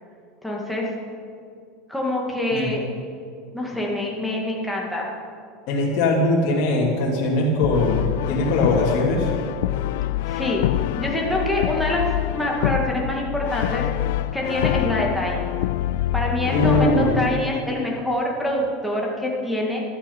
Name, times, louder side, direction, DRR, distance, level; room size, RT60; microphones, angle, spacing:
voice 1, 0.4-0.9 1.9-2.8 3.5-5.1 10.3-10.6 11.0-12.1 12.3-13.9 14.3-15.5 16.1-19.8, left 1 dB, ahead, -3 dB, 2.4 m, -25 dB
voice 2, 5.7-9.3 16.4-17.2, left 1 dB, 50° left, -4 dB, 3.0 m, -21 dB
Brass instrument, 7.6-17.4, left 15 dB, 75° left, 0.3 m, -25 dB
14.5 x 12.5 x 5.6 m, 2.3 s
supercardioid pair, 150°, 0 cm